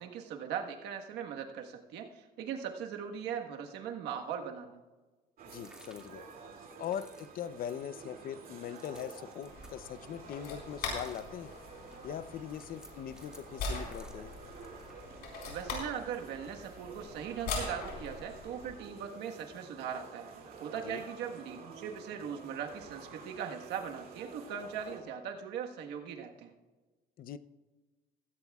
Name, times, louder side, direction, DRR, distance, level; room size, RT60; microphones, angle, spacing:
voice 1, 0.0-4.8 15.4-20.3 20.6-26.5, right 8 dB, 85° right, 4 dB, 1.4 m, -40 dB
sound 1, 5.4-25.0, right 4 dB, 60° right, 2.6 m, -50 dB
voice 2, 5.5-6.3 6.8-11.5 12.0-14.3 20.8-21.0 27.2-27.4, left 9 dB, 55° left, 14 dB, 0.7 m, -41 dB
sound 2, 5.6-10.5 10.8-14.9, right 1 dB, 5° right, 2.2 m, -58 dB
sound 3, 9.4-18.8, left 3 dB, 75° left, 4.5 m, -42 dB
16.0 x 16.0 x 2.4 m, 1.3 s
cardioid pair, 110°, 17 cm